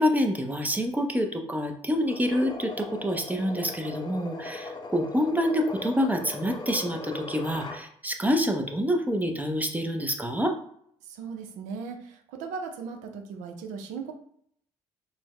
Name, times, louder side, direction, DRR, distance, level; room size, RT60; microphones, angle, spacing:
voice 1, 0.0-10.5, equal, 15° right, 3 dB, 0.5 m, -27 dB
sound 1, 2.1-7.8, left 2 dB, 35° left, 0.6 m, -39 dB
voice 2, 11.0-14.1, right 5 dB, 90° right, 4 dB, 0.5 m, -37 dB
3.8 x 2.1 x 3.0 m, 0.66 s
supercardioid pair, 80°, 13 cm